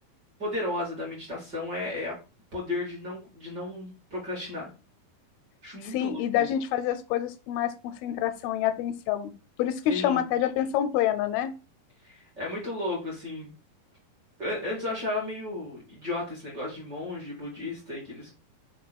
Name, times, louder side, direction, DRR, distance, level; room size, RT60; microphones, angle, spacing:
voice 1, 0.4-2.2 2.5-4.7 5.6-6.5 9.9-10.2 12.0-13.5 14.4-18.3, left 2 dB, 35° right, -4 dB, 2.0 m, -34 dB
voice 2, 5.9-9.3 9.6-11.5, left 10 dB, 85° left, 11 dB, 2.4 m, -27 dB
5.4 x 4.1 x 4.4 m, 0.31 s
omnidirectional pair, 4.4 m